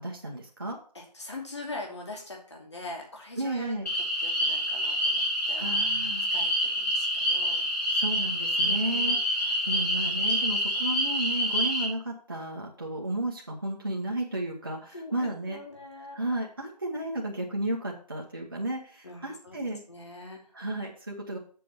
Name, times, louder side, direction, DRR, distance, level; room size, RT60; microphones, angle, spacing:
voice 1, 0.0-0.8 3.4-3.9 5.6-6.3 7.9-15.6 16.1-19.8 20.5-21.4, right 1 dB, 35° right, -2 dB, 1.3 m, -33 dB
voice 2, 0.9-3.8 4.2-6.5 6.8-7.7 8.6-9.2 14.9-16.2 19.0-19.6 19.9-20.4, left 2 dB, 40° left, 0 dB, 2.8 m, -42 dB
sound 1, 3.9-11.9, equal, 75° left, 5.1 m, -27 dB
7.7 x 5.0 x 7.0 m, 0.44 s
figure-of-eight pair, 175°, 21 cm